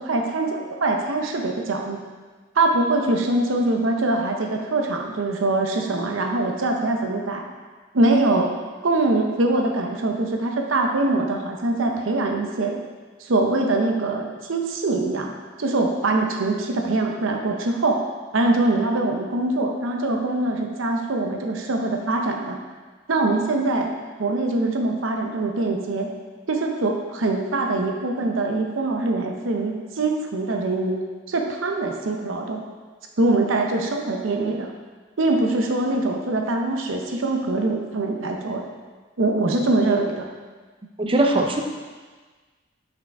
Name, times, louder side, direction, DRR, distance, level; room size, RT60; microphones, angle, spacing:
voice 1, 0.0-2.0 2.6-7.4 7.9-8.5 8.8-12.8 13.2-15.3 15.6-18.0 18.3-22.6 23.1-23.9 24.2-26.1 26.5-31.0 31.3-32.6 33.2-34.7 35.2-38.6 39.2-40.3, right 2 dB, 85° right, 2 dB, 0.7 m, -23 dB
voice 2, 41.0-41.6, right 1 dB, 25° right, 3 dB, 0.5 m, -20 dB
5.4 x 5.1 x 3.4 m, 1.4 s
head